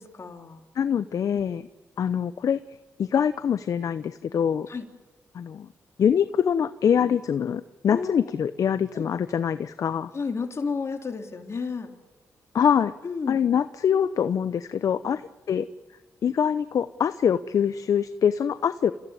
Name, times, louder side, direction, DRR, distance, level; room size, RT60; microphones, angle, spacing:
voice 1, 0.0-0.6 4.7-4.8 7.9-8.4 8.9-9.0 10.1-11.9 13.0-13.4 15.0-15.1, left 5 dB, 50° left, 4 dB, 3.4 m, -32 dB
voice 2, 0.8-1.6 2.0-2.6 3.0-4.7 5.3-5.7 6.0-10.1 12.5-12.9 13.3-15.2 15.5-15.7 16.2-18.9, left 8 dB, 65° left, 13 dB, 0.8 m, -24 dB
30.0 x 15.5 x 9.7 m, 1.2 s
supercardioid pair, 55°, 6 cm